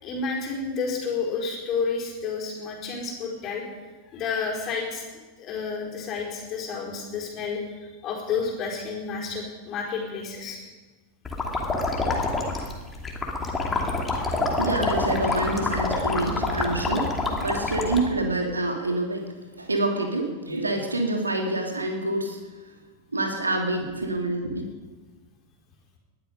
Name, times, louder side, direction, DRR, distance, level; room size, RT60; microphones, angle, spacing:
voice 1, 0.0-3.6 4.1-5.0 5.4-10.6, left 5 dB, 35° left, -1 dB, 4.5 m, -30 dB
sound 1, 11.2-18.0, left 3 dB, 15° left, 2.7 m, -27 dB
voice 2, 14.3-19.3 19.6-22.4 22.6-22.7 23.1-24.6, right 2 dB, 80° right, 3 dB, 2.6 m, -27 dB
20.0 x 12.0 x 5.4 m, 1.3 s
figure-of-eight pair, 90°, 0 cm